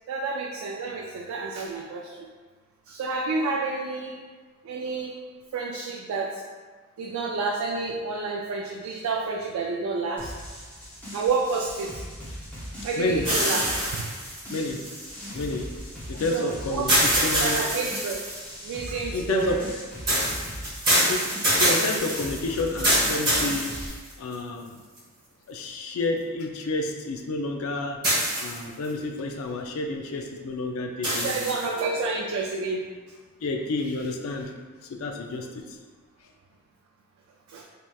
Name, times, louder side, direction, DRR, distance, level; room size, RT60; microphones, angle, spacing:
voice 1, 0.1-2.3 2.9-4.1 4.6-5.2 5.5-6.4 7.0-10.3 11.1-12.0 12.8-13.6 13.9-14.1 16.3-18.2 18.6-19.6 20.4-20.5 31.1-32.8 37.5-37.6, right 4 dB, 85° right, -1 dB, 0.3 m, -29 dB
sound 1, 10.2-23.9, equal, 5° left, 0.6 m, -39 dB
voice 2, 13.0-13.3 14.5-14.8 15.3-15.7 16.1-17.6 19.1-19.6 21.1-21.2 21.6-23.7 24.2-24.7 25.5-28.0 28.4-31.6 33.4-34.5 34.9-35.6, left 3 dB, 80° left, 3 dB, 0.4 m, -30 dB
sound 2, 13.2-15.4 16.9-18.5 20.1-24.3 25.0-25.1 28.0-28.9 31.0-31.8, right 1 dB, 20° right, 1.3 m, -25 dB
3.2 x 2.8 x 2.3 m, 1.4 s
head